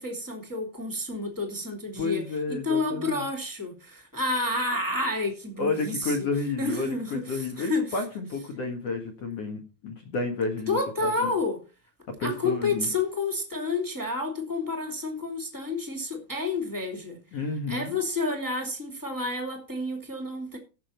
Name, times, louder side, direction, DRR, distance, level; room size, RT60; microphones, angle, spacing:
voice 1, 0.0-6.3 6.6-7.9 8.8-8.9 10.7-11.6 12.2-17.2 17.7-20.6, left 2 dB, 10° right, 1.1 m, -30 dB
voice 2, 2.0-3.3 5.6-11.3 12.2-12.9 17.3-18.0, left 3 dB, 60° left, 1.7 m, -31 dB
16.0 x 6.8 x 4.4 m
omnidirectional pair, 5.2 m